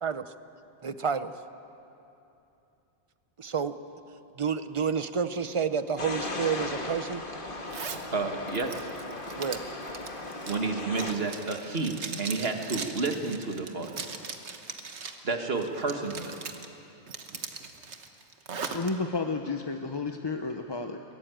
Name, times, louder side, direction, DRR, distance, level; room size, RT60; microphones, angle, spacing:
voice 1, 0.8-1.3 3.4-3.7 4.4-7.2 9.3-9.6, right 6 dB, 35° right, 12 dB, 0.6 m, -29 dB
sound 1, 6.0-11.1, left 2 dB, 50° left, 1.8 m, -37 dB
Zipper (clothing), 7.7-8.1 8.5-15.2 15.6-16.7 17.1-18.9, right 5 dB, 85° right, 1.5 m, -39 dB
voice 2, 8.1-8.9 10.5-14.0 15.2-16.4, right 3 dB, 65° right, 4 dB, 1.8 m, -31 dB
voice 3, 18.7-21.0, left 3 dB, 25° left, 5 dB, 0.7 m, -31 dB
22.0 x 17.0 x 9.1 m, 2.9 s
omnidirectional pair, 1.1 m